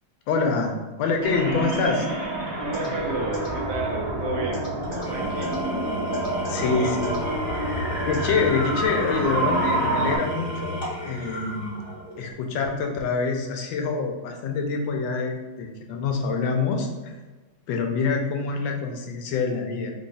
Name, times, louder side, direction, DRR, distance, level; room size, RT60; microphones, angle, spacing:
voice 1, 0.3-0.7 1.0-2.1 6.5-7.1 8.0-11.9 12.2-16.9 17.7-19.9, left 4 dB, 75° left, 2 dB, 1.3 m, -26 dB
sound 1, 1.2-10.2, right 1 dB, 25° right, 0.6 m, -28 dB
sound 2, 1.7-1.8 2.7-2.9 3.3-3.5 4.5-5.0 5.4-5.5 6.1-6.6 7.0-7.2 8.1-8.3, left 1 dB, 20° left, 0.8 m, -40 dB
voice 2, 2.6-5.6 6.4-7.0, right 3 dB, 75° right, -2 dB, 0.9 m, -31 dB
Engine / Tools, 4.8-12.3, left 1 dB, 45° left, 1.1 m, -33 dB
3.5 x 2.3 x 4.0 m, 1.2 s
omnidirectional pair, 2.2 m